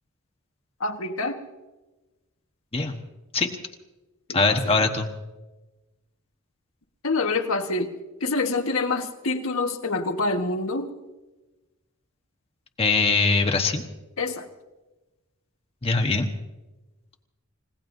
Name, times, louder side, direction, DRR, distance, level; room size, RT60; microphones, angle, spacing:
voice 1, 0.8-1.4 4.3-4.8 7.0-7.9 8.2-10.9 14.2-14.5, left 3 dB, 70° left, 5 dB, 1.5 m, -26 dB
voice 2, 4.3-5.1 12.8-13.8 15.8-16.3, left 3 dB, 30° left, 3 dB, 1.2 m, -22 dB
30.0 x 17.5 x 2.7 m, 1.1 s
head